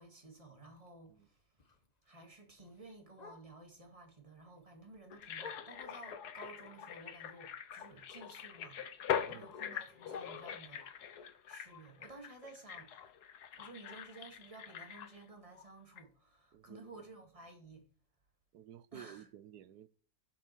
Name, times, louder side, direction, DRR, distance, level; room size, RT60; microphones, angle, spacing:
voice 1, 0.0-1.6 2.0-12.9 13.5-17.9 18.9-19.3, right 2 dB, 20° right, 2.2 m, -54 dB
Bark, 0.6-3.8 4.2-6.1 6.6-8.4 8.7-11.0 11.5-15.4 15.7-15.8 16.1-16.5 16.9-17.0 17.4-17.5 18.0-18.1, left 4 dB, 30° left, 1.2 m, -58 dB
sound 1, 5.1-15.7 16.0-16.1, left 9 dB, 90° left, 1.5 m, -43 dB
voice 2, 16.5-17.0 18.5-19.9, right 11 dB, 85° right, 1.3 m, -53 dB
11.0 x 7.6 x 4.5 m
omnidirectional pair, 1.7 m